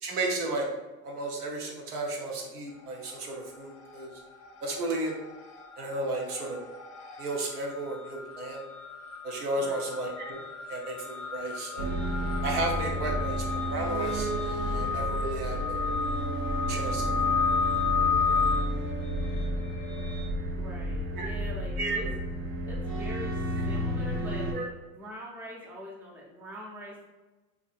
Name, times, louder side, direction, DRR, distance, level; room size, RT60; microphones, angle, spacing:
voice 1, 0.0-0.7 1.0-4.1 4.6-5.2 5.8-6.6 7.2-8.6 9.2-10.4 10.7-11.9 12.4-15.9 16.7-17.1 21.1-21.3 21.8-22.1 24.5-24.6, right 2 dB, 85° right, -1 dB, 0.8 m, -33 dB
sound 1, 2.7-3.4 3.6-20.3, left 6 dB, 45° left, 0.5 m, -33 dB
voice 2, 9.6-9.9 20.5-22.1 22.6-27.0, equal, 5° right, -4 dB, 0.4 m, -43 dB
sound 2, 11.8-24.5, right 1 dB, 50° right, 0.6 m, -31 dB
2.6 x 2.6 x 2.4 m, 1.2 s
hypercardioid pair, 90°, 44 cm